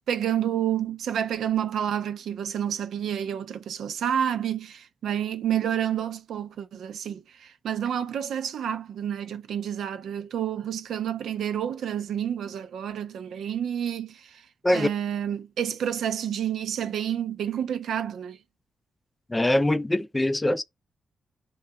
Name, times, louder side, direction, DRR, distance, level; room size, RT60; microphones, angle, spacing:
voice 1, 0.1-14.5 14.7-18.4, right 9 dB, 90° right, 0.5 m, -29 dB
voice 2, 19.3-20.6, left 1 dB, 15° left, 0.3 m, -23 dB
3.8 x 2.3 x 4.2 m
wide cardioid pair, 125°, 0 cm